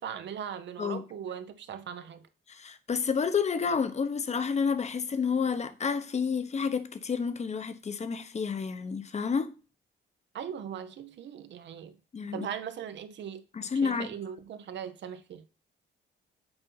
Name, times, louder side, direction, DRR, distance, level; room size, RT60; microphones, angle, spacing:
voice 1, 0.0-2.3 10.3-12.0 12.3-13.4 13.8-15.4, right 8 dB, 65° right, 0.8 m, -39 dB
voice 2, 2.5-9.5 12.1-12.5 13.5-14.1, left 6 dB, 35° left, 0.8 m, -30 dB
7.8 x 2.7 x 5.5 m
cardioid pair, 90°, 20 cm